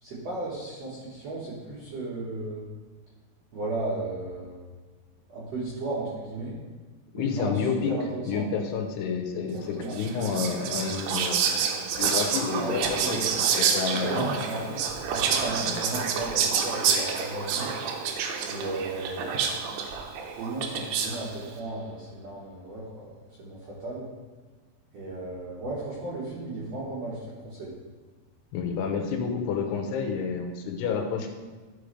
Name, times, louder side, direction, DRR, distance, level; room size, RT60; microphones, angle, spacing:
voice 1, 0.0-2.7 3.5-4.6 5.3-6.5 7.1-7.6 7.9-8.4 9.4-10.0 12.6-13.3 13.9-17.7 18.5-19.5 20.4-23.0 23.4-24.1 24.9-27.2 27.4-27.8, right 2 dB, 60° right, -7 dB, 1.8 m, -35 dB
voice 2, 7.1-7.9 8.2-11.5 12.0-12.8 13.1-14.3 28.5-31.3, left 6 dB, 85° left, 3 dB, 2.8 m, -29 dB
Whispering, 9.9-21.3, right 6 dB, 80° right, 2.7 m, -28 dB
12.0 x 5.1 x 3.3 m, 1.3 s
omnidirectional pair, 4.7 m